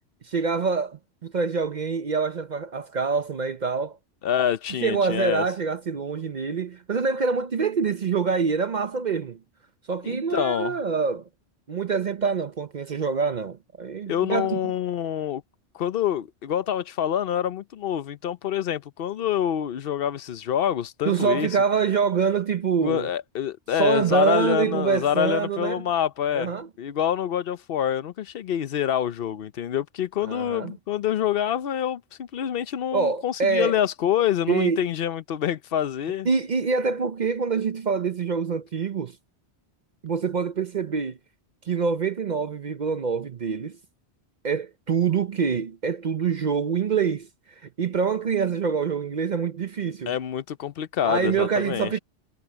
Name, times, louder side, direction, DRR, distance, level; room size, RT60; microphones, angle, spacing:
voice 1, 0.2-4.0 4.8-9.4 9.9-11.2 11.7-14.7 21.1-23.1 23.8-25.8 26.3-26.7 30.2-30.7 32.9-33.8 34.5-34.9 36.3-39.2 40.0-41.2 41.7-43.8 44.4-47.3 47.8-50.1 51.0-52.0, right 5 dB, 50° right, 0.7 m, -25 dB
voice 2, 4.2-5.4 10.0-10.8 14.1-15.4 15.7-21.5 22.8-26.5 26.8-36.3 50.1-51.9, left 10 dB, 60° left, 0.8 m, -26 dB
omnidirectional pair, 1.1 m